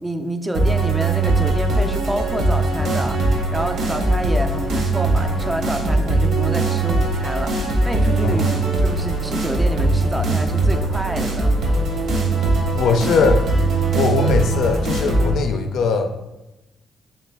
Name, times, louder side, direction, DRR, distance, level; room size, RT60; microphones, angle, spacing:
voice 1, 0.0-8.4 8.8-11.5, right 1 dB, 15° right, 6 dB, 0.3 m, -28 dB
sound 1, 0.5-15.3, right 2 dB, 70° right, 0.8 m, -20 dB
voice 2, 8.2-8.5 12.7-13.4 13.9-16.1, left 5 dB, 75° left, 6 dB, 0.4 m, -20 dB
3.2 x 2.9 x 3.3 m, 0.97 s
cardioid pair, 90°, 0 cm